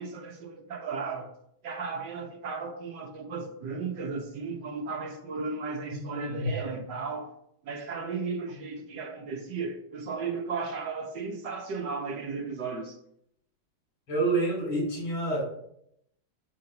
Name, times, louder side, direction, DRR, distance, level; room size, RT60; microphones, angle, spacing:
voice 1, 0.0-1.3 1.6-7.3 7.6-13.0, right 4 dB, 65° right, 1.7 m, -35 dB
voice 2, 5.9-6.5 14.1-15.4, right 2 dB, 90° left, 3.9 m, -28 dB
7.7 x 5.3 x 5.8 m
omnidirectional pair, 2.1 m